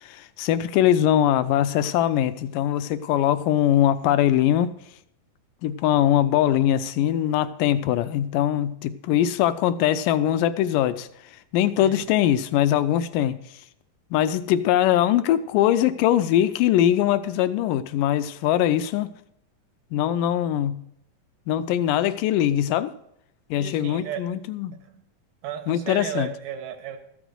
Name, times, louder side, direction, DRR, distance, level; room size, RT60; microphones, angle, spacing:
voice 1, 0.0-4.7 5.6-11.1 11.5-13.4 14.1-19.1 19.9-20.8 21.5-22.9 23.5-24.8 25.7-26.3, left 11 dB, 80° left, 13 dB, 2.2 m, -22 dB
voice 2, 23.6-24.3 24.8-25.0 25.4-27.0, right 9 dB, 75° right, 4 dB, 2.7 m, -34 dB
14.0 x 6.2 x 7.9 m, 0.75 s
omnidirectional pair, 3.9 m